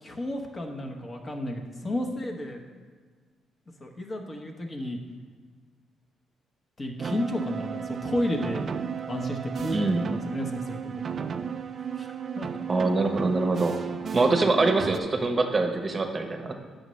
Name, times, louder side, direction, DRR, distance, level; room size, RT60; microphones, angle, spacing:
voice 1, 0.0-2.6 3.8-5.0 6.8-8.7 9.1-11.4 12.0-12.5, left 1 dB, 30° left, 2 dB, 1.0 m, -32 dB
sound 1, 7.0-15.0, right 7 dB, 45° right, 0.3 m, -34 dB
voice 2, 9.7-10.0 12.7-13.8 14.1-16.5, right 3 dB, 30° right, 4 dB, 0.8 m, -24 dB
9.6 x 6.4 x 3.1 m, 1.5 s
cardioid pair, 90°, 0 cm